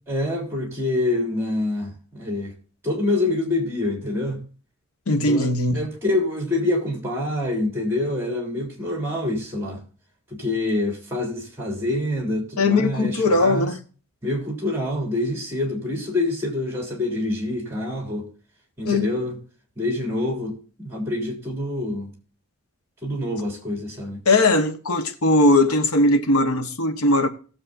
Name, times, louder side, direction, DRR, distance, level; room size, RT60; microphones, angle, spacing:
voice 1, 0.1-2.5 2.8-4.4 5.3-9.8 10.4-13.7 14.2-18.3 18.8-19.4 19.8-22.1 23.0-24.2, left 2 dB, 10° right, 3.6 m, -26 dB
voice 2, 5.1-5.8 12.6-13.8 18.8-19.1 24.2-27.3, left 2 dB, 85° left, 1.1 m, -19 dB
18.5 x 7.5 x 2.6 m
head